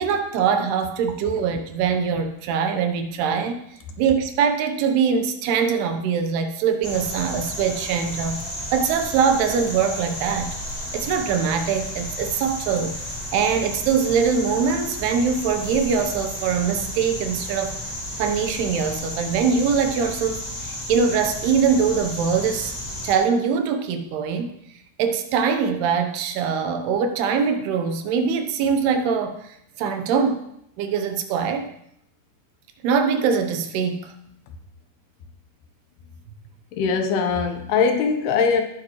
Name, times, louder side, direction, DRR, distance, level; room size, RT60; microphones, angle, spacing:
voice 1, 0.0-3.6 4.0-8.4 8.7-10.6 10.9-13.0 13.3-17.8 18.2-22.7 23.0-24.5 25.0-30.4 30.8-31.7 32.8-34.2, right 6 dB, 80° right, 7 dB, 2.9 m, -23 dB
sound 1, 6.8-23.1, equal, 30° left, 0.7 m, -33 dB
voice 2, 36.7-38.6, left 5 dB, 80° left, 5 dB, 3.0 m, -21 dB
18.5 x 7.6 x 3.1 m, 0.74 s
omnidirectional pair, 4.7 m